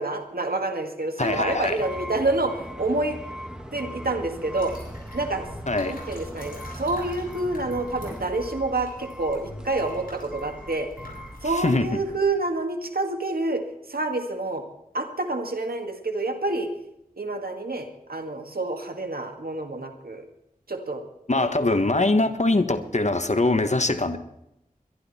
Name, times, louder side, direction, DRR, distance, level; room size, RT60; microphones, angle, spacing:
voice 1, 0.0-3.2 3.7-4.7 5.1-5.5 5.8-10.9 11.4-13.6 13.9-14.6 14.9-16.7 17.2-20.2 20.7-21.0 21.4-21.5, right 2 dB, 85° right, 5 dB, 1.9 m, -28 dB
voice 2, 1.2-1.8 5.7-5.9 11.4-12.0 21.3-24.2, left 2 dB, 50° left, 9 dB, 1.2 m, -23 dB
sound 1, 1.3-12.2, equal, 5° right, 1.7 m, -40 dB
sound 2, 4.5-11.6, left 1 dB, 75° left, 7.4 m, -44 dB
22.0 x 12.0 x 4.3 m, 0.82 s
wide cardioid pair, 50°, 15 cm